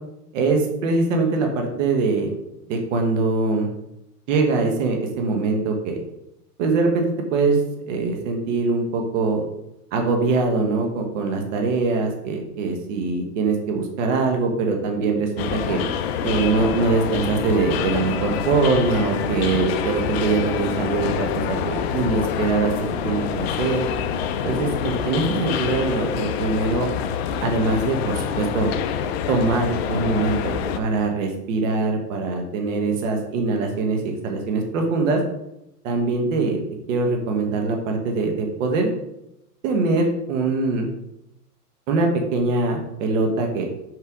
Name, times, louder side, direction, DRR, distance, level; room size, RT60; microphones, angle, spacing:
voice 1, 0.3-2.3 2.7-3.7 4.3-6.0 6.6-9.4 9.9-15.8 16.2-23.8 24.4-26.9 27.4-28.7 29.3-35.2 35.8-36.6 36.9-38.9 39.6-40.9 41.9-43.8, right 3 dB, 50° right, 3 dB, 1.4 m, -23 dB
sound 1, 15.4-30.8, left 8 dB, 45° left, 0.5 m, -26 dB
6.0 x 5.5 x 3.6 m, 0.84 s
hypercardioid pair, 145°, 47 cm